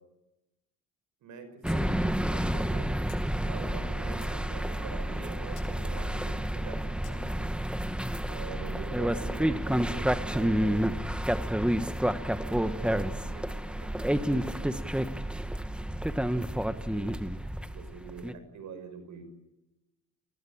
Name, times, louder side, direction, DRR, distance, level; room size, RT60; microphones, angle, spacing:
voice 1, 1.2-2.9 3.5-7.5 8.3-11.3 12.3-13.5 13.8-14.8 16.5-17.1 17.7-19.2, right 5 dB, 80° right, 9 dB, 5.7 m, -45 dB
sound 1, 1.6-18.3, right 1 dB, 5° right, 1.5 m, -30 dB
sound 2, 1.7-1.8 2.1-2.2 3.1-3.2 3.8-4.4 5.6-5.7 7.0-7.2, left 10 dB, 80° left, 5.8 m, -53 dB
30.0 x 20.5 x 8.9 m, 0.99 s
cardioid pair, 90°, 30 cm